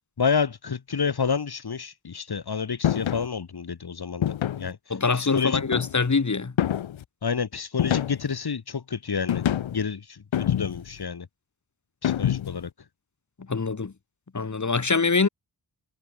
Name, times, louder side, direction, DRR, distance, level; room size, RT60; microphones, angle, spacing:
voice 1, 0.2-4.8 5.1-5.6 7.2-9.4 9.7-11.3 12.0-12.7, left 6 dB, 55° left, 2.4 m, -29 dB
sound 1, 2.8-3.3 4.2-4.7 5.5-6.1 6.6-7.0 7.8-8.4 9.3-9.8 10.3-11.0 12.0-12.6, left 10 dB, 75° left, 1.2 m, -26 dB
voice 2, 4.9-6.5 13.5-13.9 14.3-15.3, left 4 dB, 40° left, 2.5 m, -24 dB
cardioid pair, 45°, 46 cm